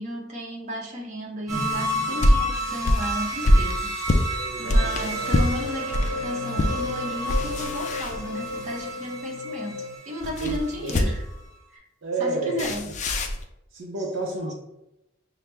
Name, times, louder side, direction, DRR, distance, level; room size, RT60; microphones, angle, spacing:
voice 1, 0.0-11.2 11.7-11.8 12.2-12.9 14.4-14.5, left 1 dB, 35° right, -2 dB, 0.8 m, -34 dB
sound 1, 1.5-10.8 11.2-11.3, right 1 dB, 15° right, 1.3 m, -31 dB
sound 2, 1.7-6.1 6.6-6.8 7.2-8.7 10.2-11.4 12.6-13.4, left 1 dB, 35° left, 0.4 m, -23 dB
voice 2, 4.3-5.1 10.4-11.0 12.0-12.9 13.7-14.5, right 3 dB, 65° right, -1 dB, 0.6 m, -31 dB
sound 3, 4.6-10.0, left 4 dB, 80° left, 0.6 m, -34 dB
5.7 x 2.0 x 3.3 m, 0.88 s
head